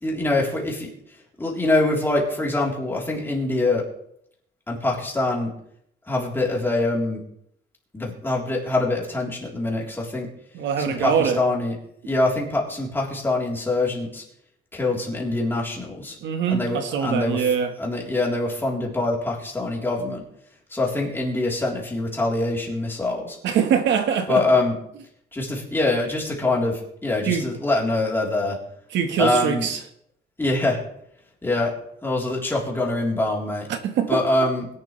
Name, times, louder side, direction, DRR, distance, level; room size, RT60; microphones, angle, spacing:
voice 1, 0.0-0.9 1.4-3.9 4.7-5.5 6.1-7.2 7.9-10.3 10.8-11.8 12.0-14.2 14.7-16.2 16.5-17.5 17.8-20.2 20.7-23.4 24.3-24.7 25.3-28.6 29.2-29.7 30.4-30.8 31.4-31.7 32.0-33.7 34.1-34.7, left 2 dB, 10° left, 3.8 m, -24 dB
voice 2, 10.5-11.4 16.2-17.7 23.4-24.4 27.2-27.5 28.9-29.8 33.7-34.2, right 7 dB, 75° right, 1.5 m, -23 dB
22.0 x 11.5 x 3.3 m
cardioid pair, 145°, 19 cm